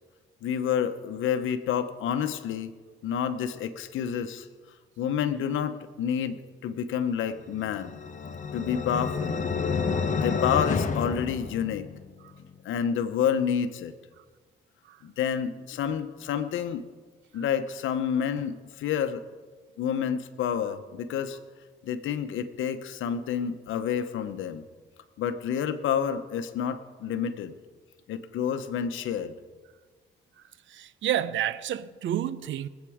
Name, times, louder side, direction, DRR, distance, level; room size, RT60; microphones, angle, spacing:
voice 1, 0.4-2.7 3.0-4.5 5.0-8.0 8.5-9.4 10.2-11.9 12.6-14.0 15.0-16.8 17.3-19.2 19.8-21.4 21.8-24.6 25.2-27.5 28.1-29.4, left 8 dB, 80° left, 1.0 m, -29 dB
sound 1, 7.5-12.1, left 5 dB, 40° left, 1.3 m, -29 dB
voice 2, 30.7-32.7, right 11 dB, 75° right, 0.7 m, -29 dB
22.0 x 8.3 x 5.0 m
cardioid pair, 90°, 20 cm